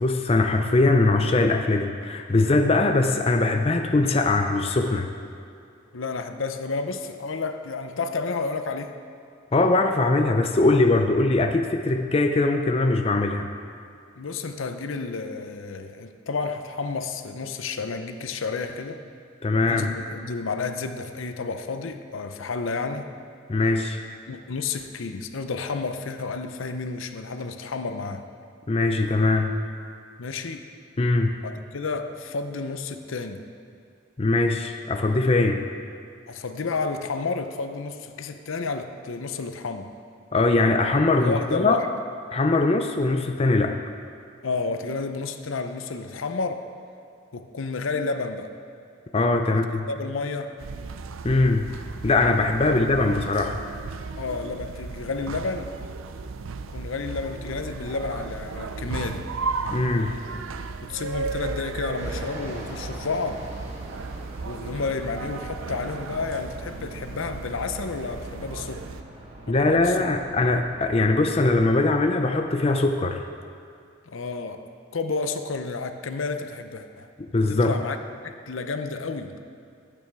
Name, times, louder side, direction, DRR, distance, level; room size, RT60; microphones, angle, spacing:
voice 1, 0.0-5.1 9.5-13.5 19.4-19.9 23.5-24.0 28.7-29.6 31.0-31.4 34.2-35.7 40.3-41.8 42.3-43.8 49.1-49.9 51.2-51.7 52.0-53.6 59.7-60.2 69.5-73.2 77.3-77.7, left 2 dB, 30° left, 5 dB, 0.5 m, -21 dB
voice 2, 5.9-8.9 14.1-19.0 19.7-23.1 24.3-28.2 30.2-30.7 31.4-33.4 36.3-39.9 41.2-41.9 44.4-46.6 47.3-48.5 49.4-49.6 49.9-50.6 52.6-52.8 54.2-55.7 56.7-59.3 60.8-63.5 64.5-68.9 69.5-70.0 70.4-70.5 74.1-74.6 74.9-77.1 77.5-78.0 78.2-79.4, left 4 dB, 80° left, 8 dB, 0.7 m, -31 dB
sound 1, 50.6-69.0, right 4 dB, 85° right, 0.5 m, -35 dB
Fixed-wing aircraft airplane, 62.0-72.8, right 1 dB, 30° right, 1.5 m, -43 dB
12.0 x 8.9 x 4.8 m, 2.4 s
head